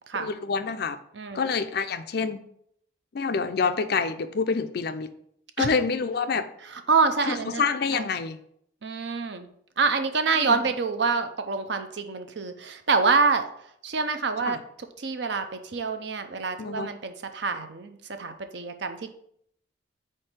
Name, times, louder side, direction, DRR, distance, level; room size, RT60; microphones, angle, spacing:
voice 1, 0.1-1.0 1.3-2.4 3.1-5.1 5.6-6.5 7.2-8.4 10.4-10.6 14.4-14.6 16.6-16.9, left 5 dB, 50° left, 10 dB, 0.4 m, -27 dB
voice 2, 6.9-7.6 7.9-8.0 8.8-9.5 9.8-13.5 13.8-14.6 15.0-19.1, right 4 dB, 60° right, 8 dB, 0.6 m, -26 dB
4.4 x 4.4 x 5.0 m, 0.69 s
head